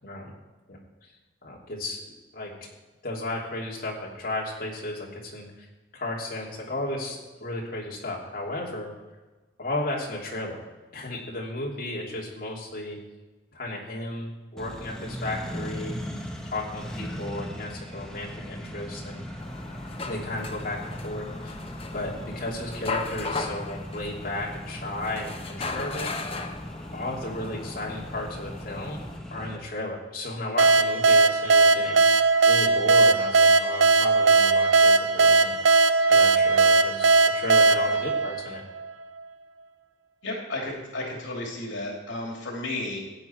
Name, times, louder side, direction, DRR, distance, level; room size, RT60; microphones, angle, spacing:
voice 1, 0.0-0.3 0.7-0.8 1.4-2.0 2.3-2.5 3.0-5.7 5.9-8.9 9.6-10.7 10.9-13.0 13.5-16.0 16.4-19.2 20.0-21.6 21.9-26.1 26.9-29.0 29.3-35.6 36.1-38.6, left 1 dB, 45° left, -3 dB, 2.8 m, -34 dB
Accelerating revving vroom, 14.6-29.6, equal, 5° left, 1.0 m, -38 dB
sound 1, 19.4-29.2, left 3 dB, 30° left, 0.9 m, -37 dB
sound 2, 30.6-39.0, right 3 dB, 80° right, 0.5 m, -19 dB
voice 2, 40.2-43.0, left 2 dB, 80° left, -1 dB, 2.8 m, -33 dB
15.0 x 9.2 x 4.5 m, 1.2 s
head